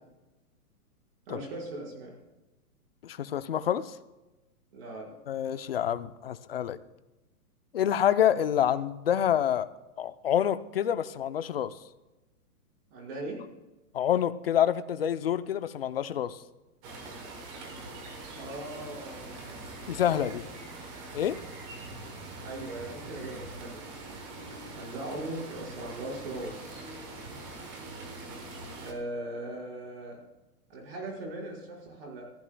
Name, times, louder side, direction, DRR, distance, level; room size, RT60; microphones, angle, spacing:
voice 1, 1.3-2.1 4.7-5.1 12.9-13.4 18.3-19.4 20.0-20.3 22.4-23.8 24.8-27.0 28.8-30.2 30.7-32.2, right 1 dB, 40° right, -2 dB, 5.1 m, -39 dB
voice 2, 3.0-4.0 5.3-6.8 7.7-9.7 10.0-11.7 13.9-16.4 19.9-20.4 21.1-21.4, left 10 dB, 40° left, 12 dB, 0.6 m, -27 dB
sound 1, 16.8-28.9, right 2 dB, 15° right, 1.0 m, -43 dB
27.5 x 15.0 x 2.3 m, 1.1 s
hypercardioid pair, 170°, 45 cm